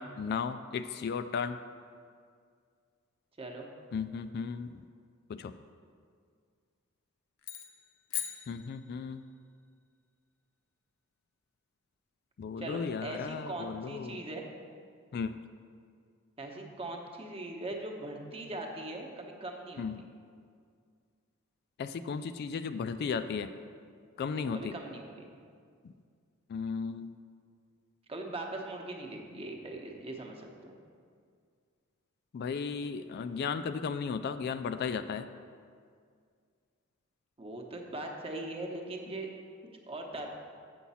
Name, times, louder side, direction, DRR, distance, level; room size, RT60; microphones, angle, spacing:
voice 1, 0.0-1.6 3.9-4.8 5.3-5.5 8.5-9.2 12.4-14.2 15.1-15.3 19.8-20.0 21.8-23.5 24.2-24.7 26.5-27.1 32.3-35.3, left 5 dB, 50° left, 10 dB, 0.3 m, -35 dB
voice 2, 3.4-3.7 12.6-14.4 16.4-20.0 24.5-25.3 28.1-30.7 37.4-39.3 39.9-40.3, right 2 dB, 30° right, 2 dB, 0.9 m, -40 dB
sound 1, 7.4-9.3, left 10 dB, 65° left, 0.7 m, -41 dB
7.2 x 7.0 x 5.6 m, 2.1 s
head